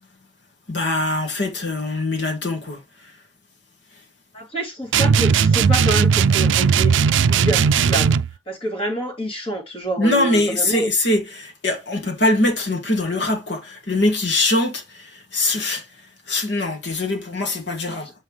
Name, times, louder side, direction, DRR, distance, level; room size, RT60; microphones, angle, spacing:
voice 1, 0.7-2.8 10.0-15.8 16.3-18.1, left 2 dB, 65° left, 2.0 m, -22 dB
voice 2, 4.3-8.1 8.5-10.9 17.9-18.1, right 1 dB, 30° left, 3.0 m, -28 dB
sound 1, 4.9-8.3, right 6 dB, 85° right, 0.4 m, -17 dB
8.0 x 5.7 x 3.1 m
head